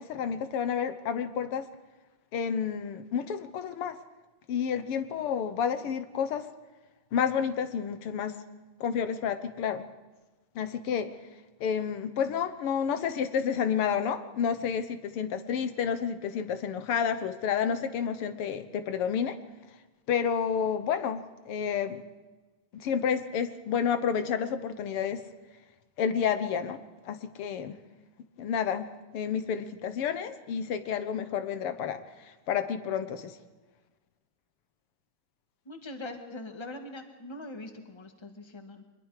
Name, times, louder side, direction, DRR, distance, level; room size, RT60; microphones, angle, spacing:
voice 1, 0.0-1.7 2.3-4.0 4.5-6.5 7.1-8.3 8.8-9.9 10.6-11.1 11.6-19.4 20.1-22.0 22.8-25.2 26.0-27.8 28.4-33.4, left 7 dB, 85° left, 10 dB, 2.1 m, -30 dB
voice 2, 35.6-38.8, left 2 dB, 15° left, 4 dB, 1.7 m, -42 dB
24.5 x 21.0 x 5.0 m, 1.2 s
omnidirectional pair, 2.4 m